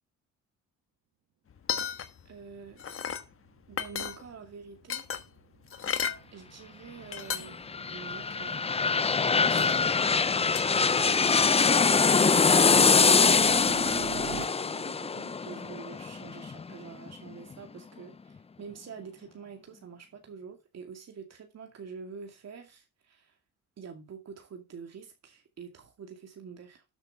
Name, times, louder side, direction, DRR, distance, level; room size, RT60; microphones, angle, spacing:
sound 1, 1.5-2.3 2.6-3.3 3.7-4.5 4.9-6.2 6.8-6.9 7.1-7.7 8.1-8.2 9.5-9.9 10.6-10.7, left 7 dB, 45° left, 1.3 m, -34 dB
voice 1, 2.3-2.8 3.7-5.1 6.3-7.6 7.9-8.6 11.0-23.4 23.8-26.8, right 6 dB, 60° right, 2.4 m, -46 dB
sound 2, 3.3-14.5, right 11 dB, 75° right, 1.2 m, -47 dB
sound 3, 7.5-17.1 17.5-17.6, left 5 dB, 20° left, 0.5 m, -24 dB
13.0 x 6.8 x 4.0 m
cardioid pair, 90°, 30 cm